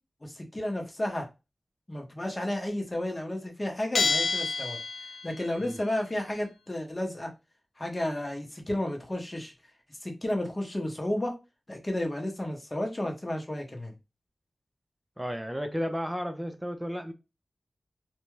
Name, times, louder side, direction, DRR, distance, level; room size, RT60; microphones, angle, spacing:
voice 1, 0.2-1.3 1.9-4.8 5.2-7.3 7.8-9.5 10.0-11.3 11.7-13.9, left 1 dB, 25° left, 0.8 m, -32 dB
Bell, 3.9-5.5, left 4 dB, 85° left, 0.4 m, -28 dB
voice 2, 15.2-17.1, equal, 10° right, 0.4 m, -33 dB
2.7 x 2.2 x 3.1 m
wide cardioid pair, 95°, 0 cm